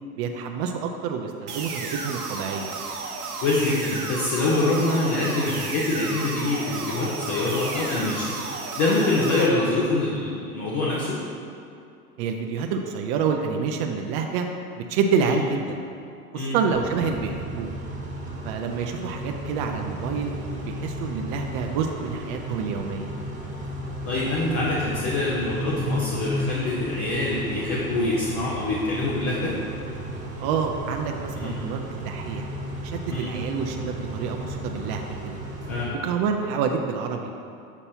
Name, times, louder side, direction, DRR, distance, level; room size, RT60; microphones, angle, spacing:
voice 1, 0.2-2.7 12.2-14.5 14.9-15.8 16.3-17.7 18.4-20.3 20.6-23.1 30.4-32.5 32.8-35.4 36.0-37.3, right 6 dB, 45° right, 3 dB, 0.5 m, -28 dB
sound 1, 1.5-9.5, right 4 dB, 85° right, 0.8 m, -33 dB
voice 2, 3.4-11.2 15.2-15.4 16.3-16.6 24.1-29.5 31.4-31.5 33.1-33.3 35.7-36.0, left 2 dB, 40° left, -6 dB, 1.1 m, -25 dB
Car / Idling / Accelerating revving vroom, 16.7-35.8, right 1 dB, 15° right, 1.5 m, -34 dB
7.1 x 5.3 x 2.8 m, 2.5 s
hypercardioid pair, 85°, 44 cm